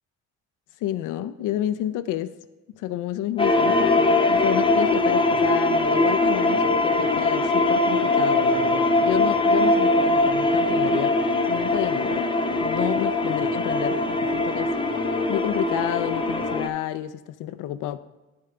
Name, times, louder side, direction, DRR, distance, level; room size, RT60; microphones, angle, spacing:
voice 1, 0.8-2.4 2.7-11.2 11.5-12.3 12.6-14.8 15.3-18.0, left 12 dB, 90° left, 0.5 m, -30 dB
sound 1, 3.4-16.7, left 2 dB, 15° left, 0.6 m, -21 dB
10.5 x 5.3 x 3.3 m
cardioid pair, 90°, 30 cm